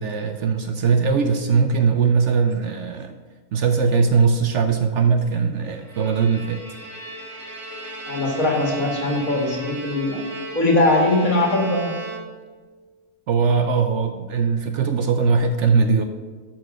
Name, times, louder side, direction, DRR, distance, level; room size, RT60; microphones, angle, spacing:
voice 1, 0.0-3.1 3.5-6.6 13.3-16.0, right 5 dB, 65° right, 8 dB, 0.8 m, -20 dB
Bowed string instrument, 5.7-12.7, right 1 dB, 25° right, 1.0 m, -36 dB
voice 2, 8.1-10.2 10.5-11.9, left 2 dB, 65° left, 1 dB, 2.1 m, -20 dB
12.5 x 4.6 x 6.2 m, 1.4 s
omnidirectional pair, 1.6 m